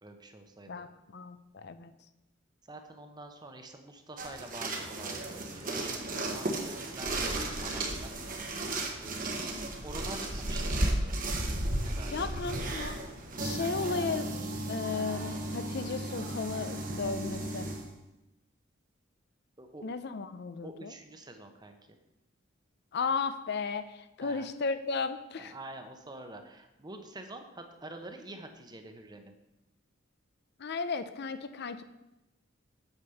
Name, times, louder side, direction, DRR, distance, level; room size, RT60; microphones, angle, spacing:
voice 1, 0.0-0.8 2.7-8.5 9.0-9.6 9.8-11.2 11.8-12.3 13.6-13.7 19.6-19.9 20.6-21.8 24.2-24.5 25.4-29.4, right 2 dB, 20° right, 6 dB, 0.9 m, -47 dB
voice 2, 1.1-1.9 12.1-13.0 13.4-14.3 14.7-17.7 19.8-20.9 22.9-23.8 24.2-25.5 30.6-31.8, left 4 dB, 60° left, 11 dB, 0.6 m, -34 dB
sound 1, 4.2-17.9, right 1 dB, 45° right, 1.3 m, -34 dB
8.1 x 5.3 x 6.9 m, 0.94 s
head